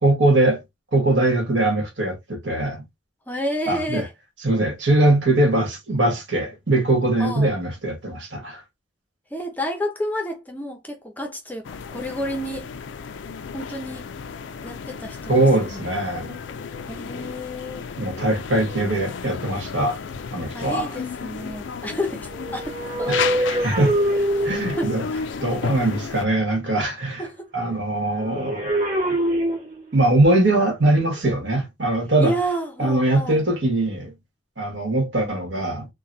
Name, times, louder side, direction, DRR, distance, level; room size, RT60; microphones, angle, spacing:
voice 1, 0.0-0.6 0.9-2.8 3.7-4.0 4.4-8.6 15.3-16.4 18.0-20.0 20.3-21.0 23.1-23.3 23.6-23.9 24.4-25.0 25.4-27.2 27.5-28.7 29.9-32.3 32.8-34.1 34.6-35.9, right 2 dB, 70° right, 1.5 m, -21 dB
voice 2, 3.3-4.1 7.2-7.5 9.3-12.7 13.5-14.1 14.6-15.9 16.9-17.9 20.5-23.1 23.5-23.6 24.4-24.5 24.8-25.2 27.2-27.5 32.2-33.4, equal, 10° left, 0.6 m, -30 dB
sound 1, 11.6-26.3, left 6 dB, 75° left, 0.4 m, -33 dB
sound 2, 22.3-25.1 28.2-30.1 31.0-31.2, right 1 dB, 45° right, 1.6 m, -24 dB
3.9 x 2.2 x 2.7 m
head